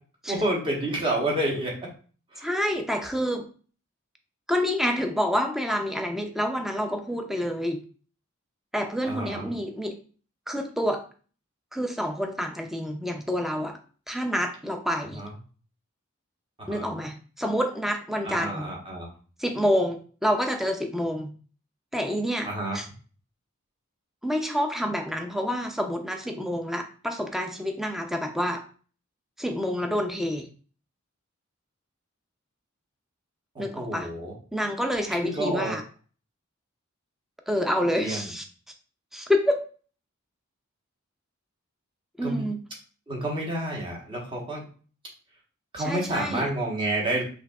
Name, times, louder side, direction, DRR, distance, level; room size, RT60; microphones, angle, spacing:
voice 1, 0.3-1.8 2.3-2.5 9.1-9.5 15.1-15.3 16.6-16.9 18.2-19.1 22.4-22.8 33.5-34.3 35.2-35.8 38.0-38.2 42.2-42.4 43.1-44.6 45.7-47.2, right 1 dB, 25° right, -2 dB, 1.2 m, -29 dB
voice 2, 2.4-3.5 4.5-7.8 8.7-10.0 10.5-11.0 11.7-13.8 14.1-15.2 16.7-18.7 19.4-21.3 21.9-22.5 22.7-22.9 24.2-28.6 29.4-30.5 33.6-34.1 34.5-35.8 37.5-38.4 39.1-39.6 42.2-42.6 45.8-46.5, equal, ahead, 5 dB, 0.4 m, -28 dB
5.6 x 2.6 x 2.4 m, 0.39 s
head